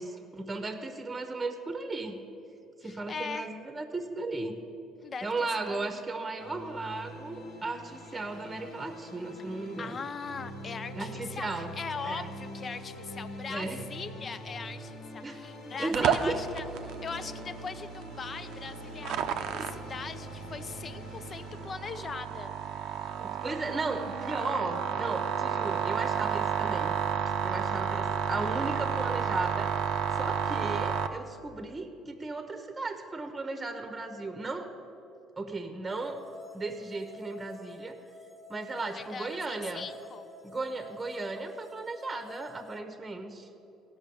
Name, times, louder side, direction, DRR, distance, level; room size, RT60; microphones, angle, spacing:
voice 1, 0.0-2.2 2.8-4.6 5.2-10.0 10.9-11.7 12.0-12.3 13.5-13.9 15.2-16.4 19.5-19.7 23.2-26.9 27.4-29.7 30.1-34.7 35.4-36.2 36.5-38.0 38.5-39.9 40.4-43.5, right 3 dB, 20° right, 7 dB, 1.0 m, -35 dB
voice 2, 2.8-3.5 5.0-5.3 5.7-6.0 9.8-22.5 38.8-40.3, left 5 dB, 35° left, 12 dB, 0.6 m, -40 dB
sound 1, 6.4-21.7, equal, 70° left, 1.7 m, -45 dB
sound 2, 15.9-31.1, right 8 dB, 70° right, 0.6 m, -32 dB
sound 3, 35.9-42.8, left 2 dB, 20° left, 1.0 m, -49 dB
17.0 x 5.7 x 7.0 m, 2.9 s
cardioid pair, 105°, 0 cm